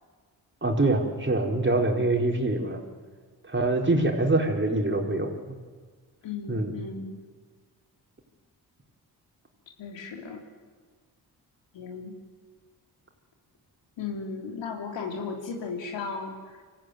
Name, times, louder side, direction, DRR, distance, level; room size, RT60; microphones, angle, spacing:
voice 1, 0.6-2.8 3.5-5.3 6.5-6.7, right 2 dB, 25° right, 2 dB, 4.3 m, -24 dB
voice 2, 6.2-7.1 9.8-10.5 11.7-12.1 14.0-16.6, left 4 dB, 75° left, 3 dB, 3.3 m, -35 dB
24.5 x 14.5 x 9.4 m, 1.5 s
supercardioid pair, 45°, 44 cm